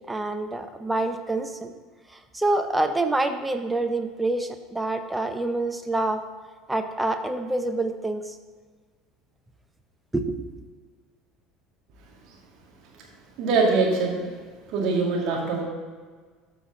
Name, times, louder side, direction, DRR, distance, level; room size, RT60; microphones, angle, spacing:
voice 1, 0.0-1.7 2.1-6.2 6.7-8.4 10.1-10.5, right 2 dB, 10° right, 7 dB, 0.9 m, -27 dB
voice 2, 13.4-14.2 14.7-15.6, right 4 dB, 55° right, -1 dB, 2.2 m, -23 dB
13.0 x 4.9 x 3.9 m, 1.5 s
figure-of-eight pair, 65°, 0 cm